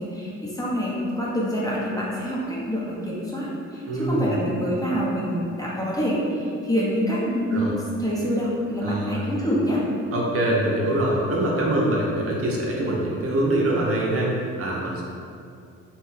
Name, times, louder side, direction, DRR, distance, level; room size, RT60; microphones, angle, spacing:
voice 1, 0.0-7.7 8.0-9.8, equal, 10° left, -6 dB, 0.6 m, -26 dB
voice 2, 3.8-4.4 7.5-7.7 8.8-9.3 10.1-15.0, right 1 dB, 50° right, -3 dB, 0.6 m, -24 dB
2.8 x 2.2 x 3.1 m, 2.4 s
cardioid pair, 90°, 30 cm